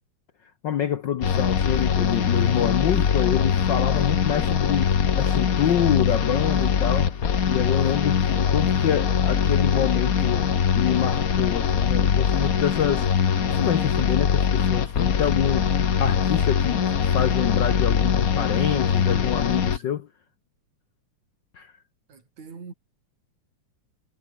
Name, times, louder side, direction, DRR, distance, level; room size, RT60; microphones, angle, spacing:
voice 1, 0.6-7.2 7.5-20.1 21.5-21.7, left 9 dB, 70° left, 1.0 m, -27 dB
sound 1, 1.2-19.8, left 7 dB, 50° left, 1.1 m, -22 dB
voice 2, 22.1-22.7, right 5 dB, 70° right, 5.8 m, -43 dB
omnidirectional pair, 3.4 m